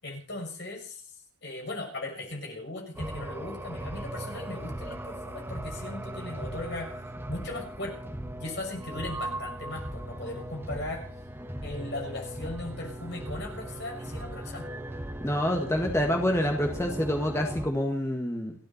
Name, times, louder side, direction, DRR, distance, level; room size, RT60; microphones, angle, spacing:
voice 1, 0.0-1.0 1.4-6.9 7.3-8.1 8.4-11.1 11.6-14.7, left 2 dB, 50° left, 1 dB, 6.2 m, -38 dB
sound 1, 3.0-17.7, right 1 dB, 10° right, 1.6 m, -38 dB
voice 2, 15.2-18.5, left 1 dB, 10° left, 2 dB, 1.7 m, -27 dB
29.5 x 10.5 x 4.3 m, 0.39 s
head